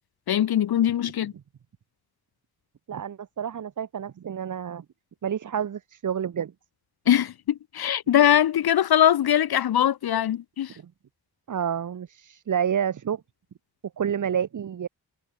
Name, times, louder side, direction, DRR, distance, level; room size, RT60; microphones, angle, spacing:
voice 1, 0.3-1.3 7.1-10.8, left 10 dB, 70° left, 0.6 m, -21 dB
voice 2, 2.9-4.8 5.2-6.5 10.8-10.9 11.5-13.2 14.0-14.9, right 8 dB, 50° right, 0.7 m, -29 dB
wide cardioid pair, 100°, 39 cm